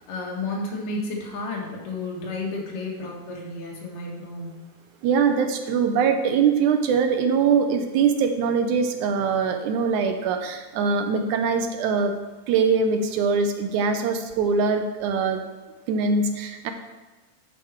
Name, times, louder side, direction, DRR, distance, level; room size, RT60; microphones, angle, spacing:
voice 1, 0.1-4.6, left 2 dB, 90° left, -3 dB, 3.4 m, -32 dB
voice 2, 5.0-12.1 12.5-15.4 15.9-16.7, right 5 dB, 75° right, 7 dB, 2.0 m, -22 dB
11.5 x 5.3 x 4.4 m, 1.2 s
omnidirectional pair, 3.6 m